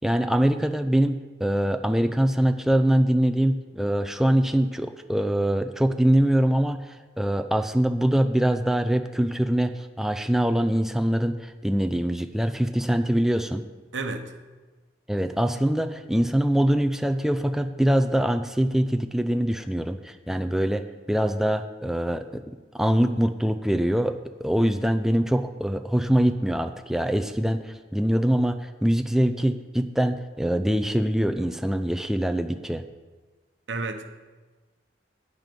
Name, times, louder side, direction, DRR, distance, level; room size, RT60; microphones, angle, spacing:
voice 1, 0.0-13.6 15.1-32.8, right 1 dB, ahead, 0.3 m, -23 dB
voice 2, 13.9-14.4 33.7-34.0, right 3 dB, 85° right, 1.0 m, -31 dB
9.2 x 9.1 x 5.3 m
head